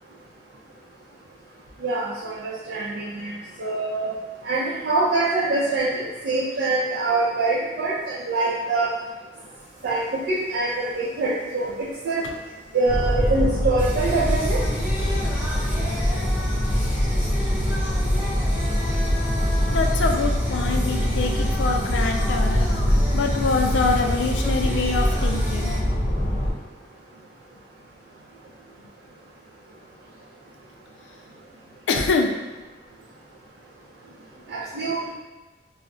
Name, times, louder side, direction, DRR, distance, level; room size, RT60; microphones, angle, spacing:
voice 1, 1.8-4.1 4.4-8.9 9.8-12.3 12.7-14.6 34.5-35.1, right 3 dB, 65° right, -7 dB, 0.5 m, -24 dB
Singing, 9.6-25.8, equal, 10° right, 0.4 m, -36 dB
sound 1, 12.9-26.5, equal, 55° left, 0.8 m, -23 dB
voice 2, 19.7-22.7 23.1-25.8 31.9-32.3, left 4 dB, 90° left, 3 dB, 0.4 m, -25 dB
2.3 x 2.1 x 3.6 m, 1.2 s
head